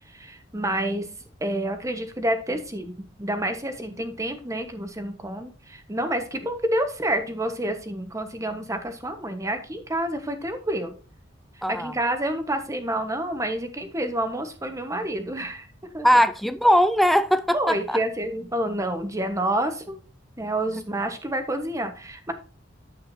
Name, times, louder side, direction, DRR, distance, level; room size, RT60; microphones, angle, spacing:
voice 1, 0.1-1.1 1.4-2.9 3.2-11.0 11.6-15.7 15.9-16.2 17.5-20.0 20.4-22.3, right 1 dB, 15° right, 1.2 m, -28 dB
voice 2, 11.6-11.9 16.0-18.0, equal, ahead, 0.5 m, -20 dB
9.9 x 7.9 x 2.7 m
head